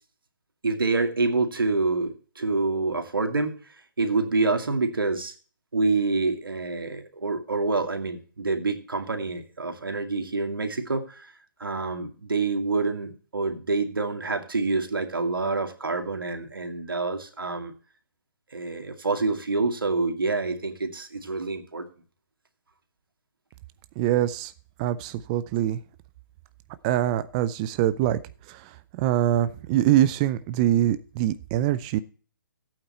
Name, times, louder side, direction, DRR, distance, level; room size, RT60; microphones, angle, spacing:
voice 1, 0.6-3.5 4.0-5.3 5.7-11.3 11.6-17.7 18.5-21.9, right 3 dB, 85° right, 7 dB, 2.3 m, -27 dB
voice 2, 24.0-24.5 24.8-25.8 26.8-28.2 28.5-28.6 28.9-32.0, right 12 dB, 20° right, 13 dB, 0.4 m, -24 dB
15.0 x 8.8 x 4.3 m, 0.40 s
hypercardioid pair, 155°, 11 cm